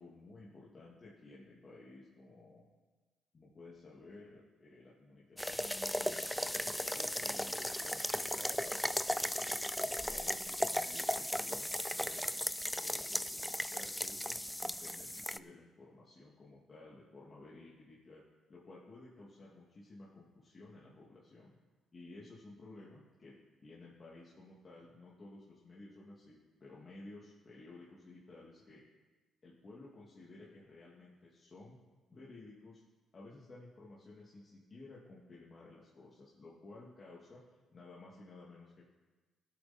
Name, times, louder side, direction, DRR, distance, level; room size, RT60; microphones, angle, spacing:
voice 1, 0.0-2.7 3.3-12.3 12.8-18.2 18.5-21.6 21.9-23.4 23.6-28.8 29.4-31.8 32.1-32.8 33.1-37.4 37.7-38.9, left 2 dB, 35° left, -6 dB, 2.4 m, -54 dB
sound 1, 5.4-15.4, left 1 dB, 5° left, 0.4 m, -36 dB
17.0 x 8.4 x 4.4 m, 1.3 s
cardioid pair, 90°, 0 cm